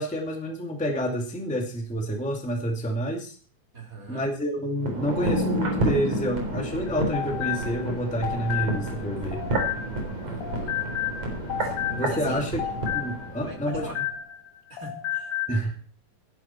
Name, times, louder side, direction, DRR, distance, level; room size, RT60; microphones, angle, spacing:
voice 1, 0.0-3.3 4.1-9.4 12.0-12.6 12.9-13.9 15.5-15.8, equal, 10° left, 1 dB, 0.4 m, -28 dB
voice 2, 3.7-4.3 10.2-10.8 11.6-11.8 12.1-12.7 13.4-14.1 14.7-15.3, right 2 dB, 20° right, 0 dB, 3.3 m, -42 dB
sound 1, 4.8-13.9 14.1-14.2, right 1 dB, 40° right, 4.5 m, -30 dB
sound 2, 6.9-10.1 10.4-14.5 14.8-15.6, left 11 dB, 80° left, 4.1 m, -32 dB
17.0 x 11.0 x 4.4 m, 0.40 s
omnidirectional pair, 5.0 m